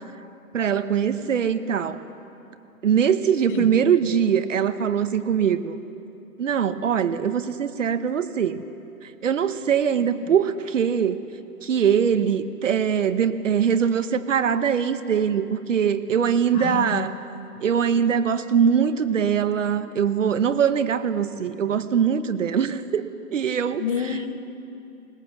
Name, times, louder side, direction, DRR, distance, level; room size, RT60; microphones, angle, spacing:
voice 1, 0.5-2.0 2.8-5.8 6.4-8.6 9.0-11.2 11.6-17.1 17.6-23.1 23.3-23.8, right 7 dB, 55° right, 11 dB, 1.0 m, -22 dB
voice 2, 16.5-17.3 23.8-24.4, left 8 dB, 35° left, 8 dB, 1.3 m, -29 dB
21.0 x 19.5 x 7.2 m, 2.7 s
hypercardioid pair, 150°, 46 cm